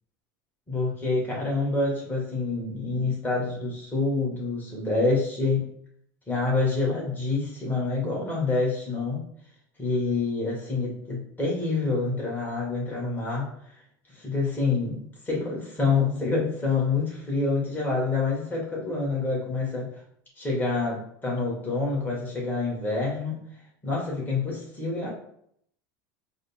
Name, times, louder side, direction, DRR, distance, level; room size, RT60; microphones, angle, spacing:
voice 1, 0.7-5.7 6.3-9.2 9.8-13.5 14.2-19.9 20.4-23.4 23.8-25.1, left 3 dB, 20° left, -5 dB, 1.9 m, -27 dB
4.9 x 2.3 x 4.3 m, 0.68 s
hypercardioid pair, 95°, 10 cm